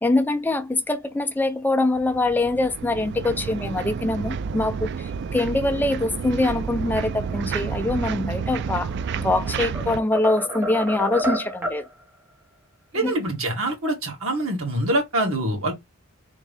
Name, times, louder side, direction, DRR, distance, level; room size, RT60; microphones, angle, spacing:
voice 1, 0.0-8.9 9.2-11.9 12.9-13.1, left 2 dB, 10° left, 0.5 m, -24 dB
sound 1, 2.0-10.0, right 6 dB, 55° right, 0.3 m, -30 dB
sound 2, 8.9-9.4 9.7-11.9, right 1 dB, 10° right, 1.0 m, -29 dB
voice 2, 12.9-15.7, right 1 dB, 75° right, 2.1 m, -25 dB
3.6 x 3.2 x 3.2 m
head